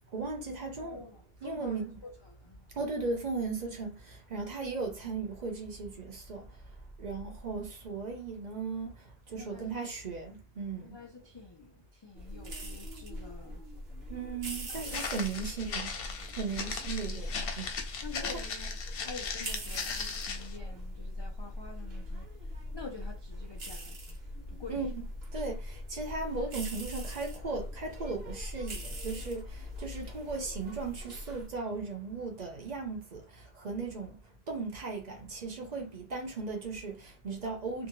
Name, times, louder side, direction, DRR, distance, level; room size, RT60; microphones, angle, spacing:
voice 1, 0.1-1.0 1.4-2.0 2.8-6.5 7.0-9.0 9.3-11.0 14.1-16.0 16.3-17.7 18.2-18.4 24.7-24.9 25.3-34.2 34.5-37.9, right 4 dB, 50° right, 0.7 m, -37 dB
voice 2, 0.8-2.1 2.4-2.6 9.3-9.9 10.8-13.6 14.7-15.0 16.4-16.6 18.0-22.3 22.7-24.2 24.5-24.9, left 4 dB, 45° left, 0.3 m, -48 dB
sound 1, 12.2-31.5, left 1 dB, 75° right, 1.1 m, -41 dB
Walk footsteps, 14.9-20.6, left 5 dB, 70° left, 0.8 m, -38 dB
2.6 x 2.0 x 2.9 m
omnidirectional pair, 1.0 m